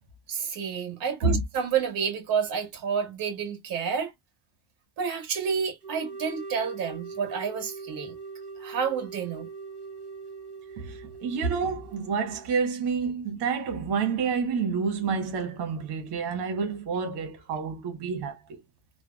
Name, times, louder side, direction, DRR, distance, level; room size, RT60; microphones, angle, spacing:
voice 1, 0.3-4.1 5.0-8.1 8.6-9.5, right 7 dB, 55° right, 1.7 m, -29 dB
sound 1, 5.8-12.6, right 4 dB, 15° right, 1.8 m, -42 dB
voice 2, 10.8-18.6, right 5 dB, 75° right, 1.4 m, -29 dB
3.4 x 2.3 x 2.3 m
cardioid pair, 135°, 41 cm